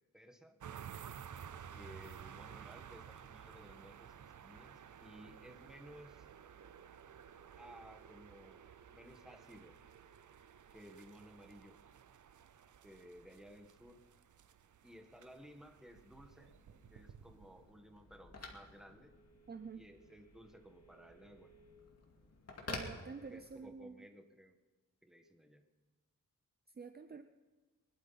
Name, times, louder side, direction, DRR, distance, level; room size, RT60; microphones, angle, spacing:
voice 1, 0.1-0.6 1.7-6.3 7.6-8.6 8.9-9.8 10.7-11.8 12.8-14.0 14.8-16.5 16.9-19.1 19.7-21.5 23.3-24.6 25.0-25.7, equal, ahead, 4 dB, 1.6 m, -57 dB
sound 1, 0.6-17.9, right 8 dB, 60° right, 0.7 m, -54 dB
Telephone, 15.9-23.8, left 2 dB, 45° left, 2.5 m, -52 dB
voice 2, 19.5-19.8 22.7-24.0 26.8-27.2, right 5 dB, 30° right, 8 dB, 0.7 m, -48 dB
22.5 x 12.0 x 4.2 m, 1.3 s
wide cardioid pair, 115°, 34 cm